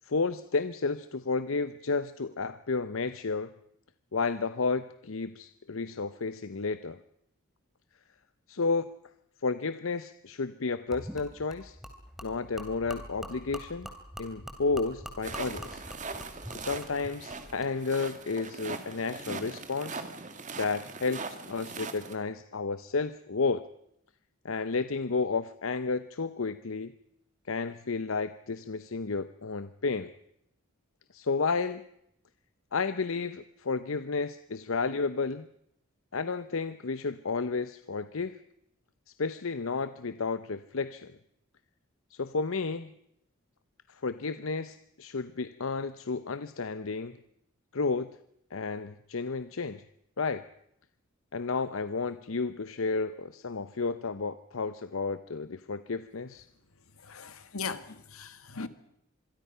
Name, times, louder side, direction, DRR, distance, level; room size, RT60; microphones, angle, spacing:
voice 1, 0.0-3.5 4.1-7.0 8.5-8.9 9.4-11.8 12.2-13.9 14.2-15.8 16.5-20.1 20.6-23.6 24.4-26.9 27.5-30.1 31.1-31.8 32.7-35.5 36.1-38.4 39.2-41.2 42.1-42.9 43.9-47.2 47.7-48.1 48.5-49.8 50.2-50.4 51.3-56.5, left 4 dB, 70° left, 0.8 m, -32 dB
Gurgling / Liquid, 10.9-17.7, equal, ahead, 2.9 m, -44 dB
sound 1, 15.2-22.2, right 4 dB, 35° right, 2.0 m, -41 dB
voice 2, 57.0-58.7, left 5 dB, 85° left, 1.7 m, -38 dB
26.5 x 22.5 x 5.6 m
head